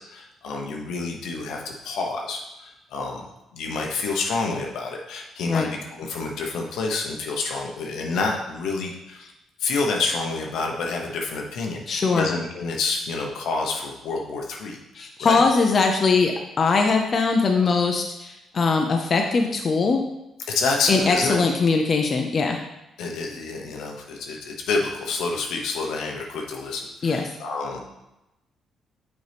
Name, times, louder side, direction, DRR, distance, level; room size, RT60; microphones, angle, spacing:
voice 1, 0.1-3.2 3.5-9.3 9.6-15.4 20.5-21.4 23.0-27.8, left 3 dB, 80° left, 1 dB, 0.9 m, -28 dB
voice 2, 11.9-12.3 15.0-20.0 20.9-22.6 27.0-27.3, left 4 dB, 45° left, 2 dB, 0.6 m, -21 dB
6.6 x 4.5 x 3.5 m, 0.92 s
cardioid pair, 90°, 0 cm